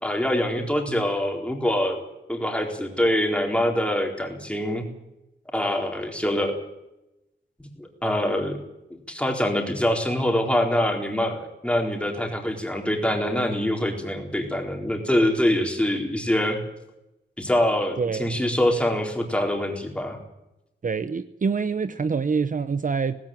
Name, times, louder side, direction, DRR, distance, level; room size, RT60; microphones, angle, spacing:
voice 1, 0.0-4.9 5.5-6.6 7.8-8.6 8.9-16.6 17.4-20.2, left 1 dB, 5° left, 2 dB, 4.2 m, -24 dB
voice 2, 18.0-18.4 20.8-23.2, right 5 dB, 45° right, 12 dB, 0.8 m, -26 dB
18.5 x 17.0 x 9.1 m, 0.90 s
wide cardioid pair, 130°, 19 cm